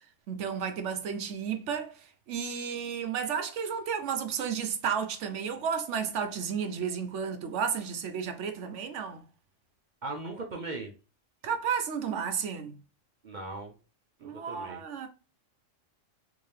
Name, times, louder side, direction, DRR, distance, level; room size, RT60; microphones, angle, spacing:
voice 1, 0.3-9.2 11.4-12.8 14.2-15.1, right 7 dB, 70° right, 0.9 m, -32 dB
voice 2, 10.0-10.9 13.2-13.7 14.2-14.8, right 2 dB, 55° right, 0.5 m, -38 dB
3.7 x 2.7 x 3.2 m
omnidirectional pair, 1.3 m